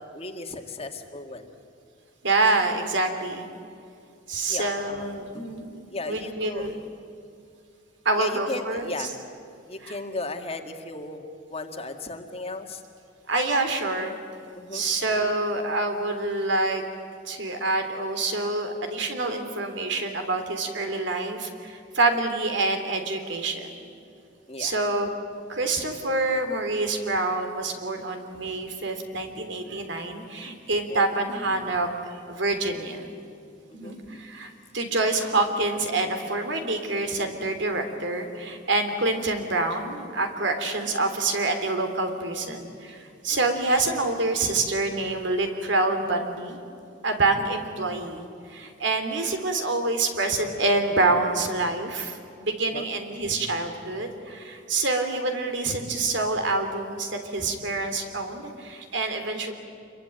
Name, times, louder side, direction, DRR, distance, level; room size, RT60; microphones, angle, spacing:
voice 1, 0.0-1.5 4.4-5.5 5.9-6.7 8.2-9.1 9.7-12.8 14.6-14.9 24.5-24.8 30.9-31.2 33.7-34.0 52.7-52.9, left 2 dB, 30° left, 5 dB, 2.0 m, -36 dB
voice 2, 2.2-3.5 4.3-5.8 6.1-6.7 8.0-9.1 9.8-10.0 13.3-14.1 14.7-16.8 17.3-23.7 24.6-25.1 25.5-33.1 33.7-46.6 47.0-59.5, right 2 dB, 65° right, 6 dB, 3.3 m, -27 dB
27.5 x 23.0 x 9.2 m, 2.5 s
head